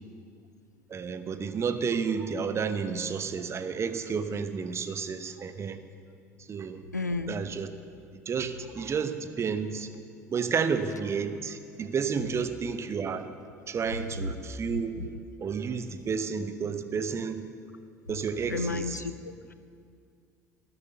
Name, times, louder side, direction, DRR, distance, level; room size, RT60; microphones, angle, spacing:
voice 1, 0.9-5.8 6.5-6.8 7.3-7.7 8.3-9.9 10.3-13.3 13.7-15.1 15.4-17.4 18.1-18.9, right 6 dB, 30° right, 10 dB, 1.0 m, -31 dB
voice 2, 6.9-7.4 18.5-19.5, left 3 dB, 90° left, 12 dB, 0.5 m, -32 dB
13.5 x 12.5 x 7.2 m, 2.3 s
figure-of-eight pair, 65°, 9 cm